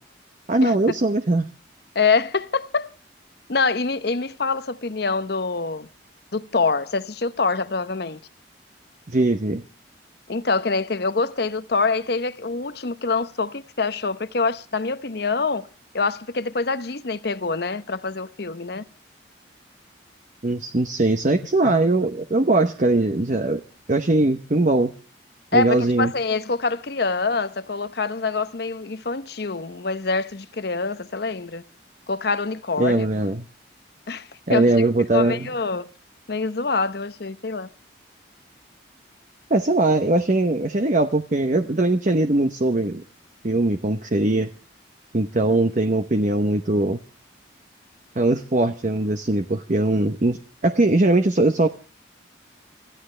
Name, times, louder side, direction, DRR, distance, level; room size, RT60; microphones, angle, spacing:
voice 1, 0.5-1.5 9.1-9.6 20.4-23.6 23.9-24.9 25.5-26.1 32.8-33.5 34.5-35.5 39.5-43.0 43.4-44.5 45.1-47.0 48.2-51.7, right 2 dB, 40° right, 0.8 m, -20 dB
voice 2, 1.9-2.9 3.5-5.9 6.3-8.2 10.3-15.7 15.9-18.8 21.6-21.7 25.5-31.6 32.1-33.1 34.1-34.7 35.1-35.9 36.3-37.7, left 4 dB, 55° left, 0.8 m, -25 dB
26.0 x 14.0 x 3.3 m
head